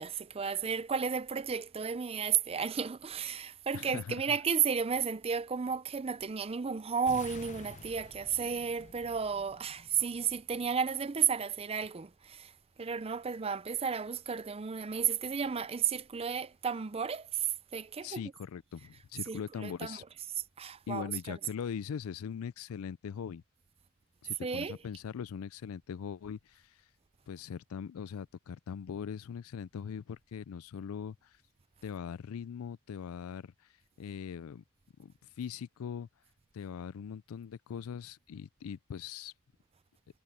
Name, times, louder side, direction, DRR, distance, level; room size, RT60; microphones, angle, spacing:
voice 1, 0.0-12.5 12.8-18.3 18.8-18.9 19.2-21.4 24.4-24.9, right 6 dB, 30° right, 0.5 m, -33 dB
voice 2, 3.7-4.2 18.0-20.0 20.9-23.4 24.2-26.8 27.3-31.4 31.8-33.5 34.0-34.6 35.0-36.1 36.5-39.3, left 7 dB, 80° left, 0.4 m, -41 dB
sound 1, 7.1-11.1, left 3 dB, 35° left, 0.8 m, -51 dB
head